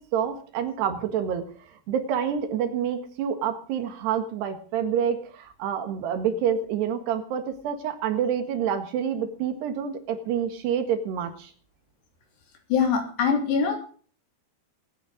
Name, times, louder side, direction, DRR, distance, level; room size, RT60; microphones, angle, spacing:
voice 1, 0.0-1.5 1.9-11.5, right 8 dB, 75° right, 8 dB, 3.7 m, -27 dB
voice 2, 12.7-13.8, left 6 dB, 75° left, 3 dB, 5.6 m, -23 dB
20.0 x 9.7 x 5.1 m, 0.43 s
omnidirectional pair, 4.8 m